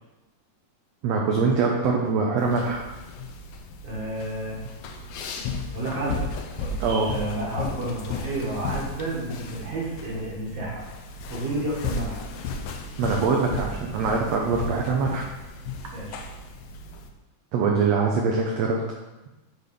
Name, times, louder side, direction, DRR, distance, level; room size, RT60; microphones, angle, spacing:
voice 1, 1.0-2.8 6.8-7.1 13.0-15.2 17.5-18.8, right 4 dB, 75° right, 0 dB, 1.5 m, -23 dB
sound 1, 2.4-17.1, left 4 dB, 85° left, 2.3 m, -35 dB
voice 2, 3.8-4.6 5.7-10.8 11.3-12.2 14.6-14.7 15.9-16.2, right 1 dB, 55° right, -4 dB, 2.5 m, -31 dB
8.3 x 4.1 x 5.2 m, 1.1 s
omnidirectional pair, 3.9 m